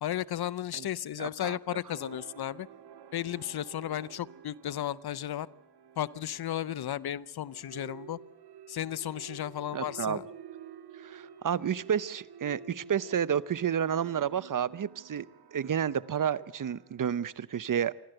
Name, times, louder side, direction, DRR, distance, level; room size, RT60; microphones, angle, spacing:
voice 1, 0.0-2.7 3.1-5.5 6.0-8.2 8.7-10.3, left 11 dB, 75° left, 20 dB, 0.7 m, -34 dB
voice 2, 1.2-1.8 9.7-10.2 11.0-17.9, right 8 dB, 55° right, 18 dB, 0.8 m, -31 dB
sound 1, 1.9-17.2, right 7 dB, 85° right, 1.0 m, -51 dB
26.0 x 13.5 x 7.8 m, 1.0 s
cardioid pair, 75°, 38 cm